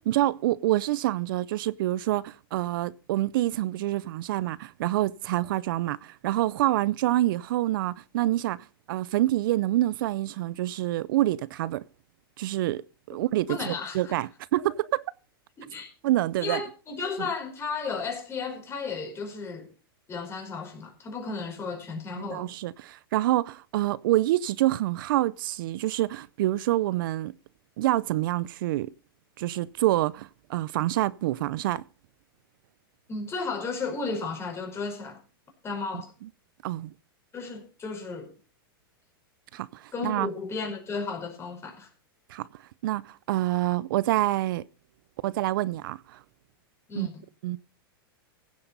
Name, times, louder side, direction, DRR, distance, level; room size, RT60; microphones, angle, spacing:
voice 1, 0.0-8.6 8.9-11.8 12.4-12.8 13.1-15.0 16.0-16.6 17.2-17.3 22.3-27.3 27.8-28.9 29.4-31.8 36.6-36.9 39.5-40.3 42.3-42.5 42.8-44.6 45.2-46.2 47.0-47.1 47.4-47.6, right 15 dB, 65° right, 0.5 m, -27 dB
voice 2, 13.5-14.1 15.6-15.9 16.4-19.7 20.1-22.5 33.1-35.2 35.6-36.1 37.3-38.3 39.9-41.9 46.9-47.2, left 4 dB, 20° left, 5.1 m, -34 dB
16.0 x 7.7 x 5.4 m
hypercardioid pair, 130°, 12 cm